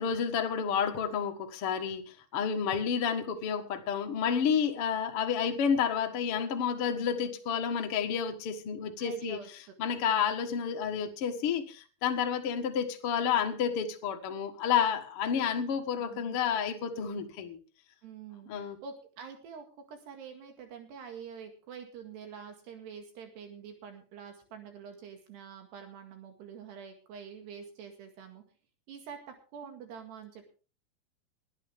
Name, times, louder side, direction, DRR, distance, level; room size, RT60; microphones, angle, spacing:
voice 1, 0.0-9.4 9.8-17.6 18.5-18.8, left 7 dB, 65° left, 1.3 m, -30 dB
voice 2, 9.0-9.5 10.9-11.1 16.1-16.4 18.0-28.4 28.9-30.5, right 7 dB, 70° right, 4.0 m, -46 dB
20.5 x 10.5 x 3.6 m
omnidirectional pair, 5.2 m